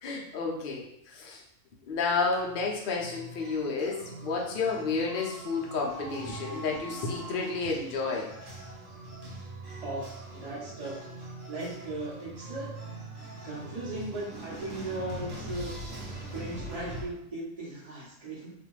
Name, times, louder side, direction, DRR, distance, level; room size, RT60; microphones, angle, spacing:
voice 1, 0.0-1.4 1.8-8.3, left 4 dB, 70° left, -1 dB, 0.5 m, -31 dB
sound 1, 2.4-17.1, right 1 dB, 60° right, 1.1 m, -42 dB
voice 2, 9.8-11.0 11.5-12.7 13.4-15.7 16.3-18.5, right 2 dB, 30° right, -6 dB, 0.7 m, -37 dB
2.5 x 2.4 x 3.1 m, 0.73 s
omnidirectional pair, 1.6 m